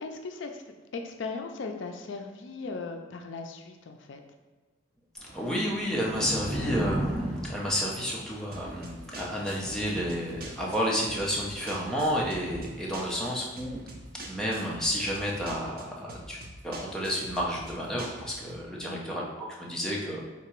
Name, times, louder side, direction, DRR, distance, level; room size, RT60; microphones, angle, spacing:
voice 1, 0.0-4.2 18.9-19.2, left 4 dB, 70° left, 5 dB, 0.4 m, -38 dB
Thunder / Rain, 5.2-13.5, right 1 dB, 65° right, 1.4 m, -38 dB
voice 2, 5.3-13.8 14.2-16.4 16.6-19.3 19.6-20.2, equal, 5° left, -4 dB, 0.6 m, -31 dB
sound 1, 8.5-18.6, right 1 dB, 50° right, 0.6 m, -45 dB
3.6 x 2.9 x 4.4 m, 1.3 s
head